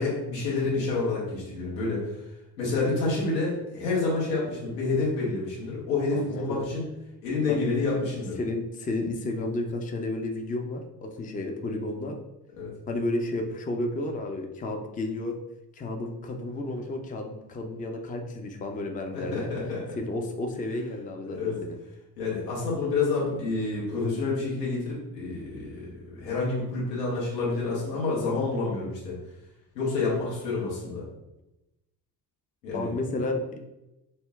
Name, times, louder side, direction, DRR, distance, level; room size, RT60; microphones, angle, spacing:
voice 1, 0.0-2.2 2.6-6.8 7.2-8.4 12.6-12.7 19.1-20.0 21.2-21.6 22.2-29.2 29.7-31.0 32.6-32.9, left 3 dB, 90° left, -6 dB, 1.3 m, -28 dB
voice 2, 6.1-6.6 7.5-7.7 8.4-12.2 12.9-15.4 15.8-19.5 20.0-21.8 32.7-33.4, left 2 dB, 15° left, 3 dB, 0.5 m, -32 dB
5.4 x 2.1 x 2.3 m, 0.94 s
hypercardioid pair, 50°, 49 cm